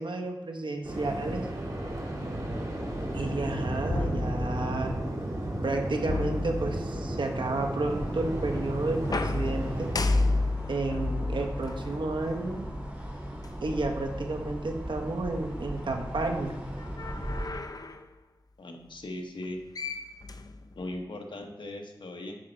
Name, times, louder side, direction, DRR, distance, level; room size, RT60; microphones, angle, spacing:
voice 1, 0.0-1.4 3.1-5.0 5.6-9.9 10.7-12.7 13.6-16.5, right 2 dB, 75° right, 3 dB, 1.2 m, -31 dB
Waves surf, 0.8-10.5, right 1 dB, 45° right, 2.0 m, -33 dB
sound 1, 3.9-5.0 6.1-7.2 9.0-12.6 13.4-13.5 16.8-18.1 19.4-19.5 19.8-21.0, left 3 dB, 50° left, 0.5 m, -32 dB
sound 2, 7.8-17.5, equal, 20° right, 1.9 m, -38 dB
voice 2, 18.6-19.6 20.8-22.4, left 1 dB, 75° left, 3 dB, 1.1 m, -38 dB
9.3 x 5.2 x 4.5 m, 1.1 s
wide cardioid pair, 75°, 8 cm